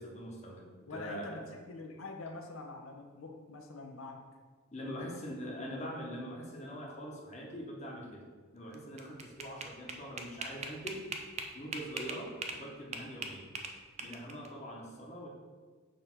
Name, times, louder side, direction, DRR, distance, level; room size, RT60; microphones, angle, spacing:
voice 1, 0.0-1.4 4.7-8.3 8.5-11.1 11.5-13.5 14.0-15.3, equal, 30° left, -2 dB, 1.1 m, -43 dB
voice 2, 0.9-4.2 4.7-5.1, left 2 dB, 75° left, 2 dB, 1.0 m, -45 dB
sound 1, 8.7-12.6 12.9-14.5, right 4 dB, 30° right, 0.5 m, -40 dB
6.4 x 3.4 x 5.9 m, 1.5 s
head